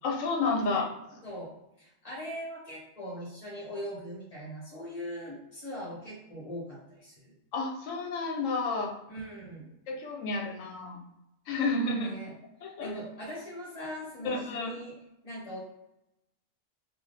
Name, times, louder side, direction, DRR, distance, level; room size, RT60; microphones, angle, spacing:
voice 1, 0.0-0.9 7.5-8.9 9.9-11.0 11.5-12.1 12.6-12.9 14.2-14.7, left 3 dB, 80° left, 1 dB, 0.9 m, -30 dB
voice 2, 1.8-7.3 9.1-9.7 12.0-12.3 12.8-14.9 15.2-15.6, equal, 35° left, -6 dB, 0.7 m, -40 dB
2.5 x 2.3 x 3.2 m, 0.88 s
omnidirectional pair, 1.3 m